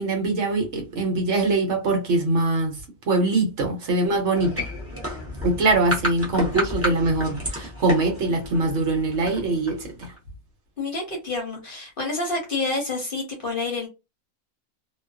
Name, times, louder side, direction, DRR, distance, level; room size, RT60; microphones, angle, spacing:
voice 1, 0.0-2.8 3.1-4.7 5.4-10.1, right 2 dB, 60° right, 1.0 m, -23 dB
sound 1, 4.3-10.2, equal, 15° right, 0.6 m, -31 dB
voice 2, 10.8-13.9, left 3 dB, 50° left, 0.8 m, -28 dB
2.4 x 2.2 x 2.3 m
omnidirectional pair, 1.4 m